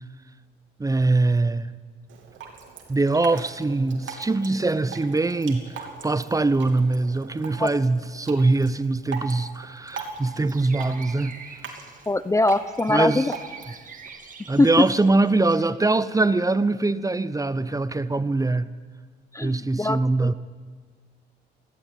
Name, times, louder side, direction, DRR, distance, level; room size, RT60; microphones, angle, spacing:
voice 1, 0.8-1.8 2.9-11.4 12.9-13.3 14.5-18.7 19.4-20.3, right 3 dB, 15° right, 0.8 m, -23 dB
Drip, 2.1-14.1, right 5 dB, 75° right, 3.2 m, -41 dB
sound 1, 10.0-15.7, right 6 dB, 40° right, 2.3 m, -45 dB
voice 2, 12.1-13.4 14.6-14.9 19.3-20.3, left 2 dB, 15° left, 0.6 m, -22 dB
19.5 x 15.5 x 9.2 m
cardioid pair, 90°, 20 cm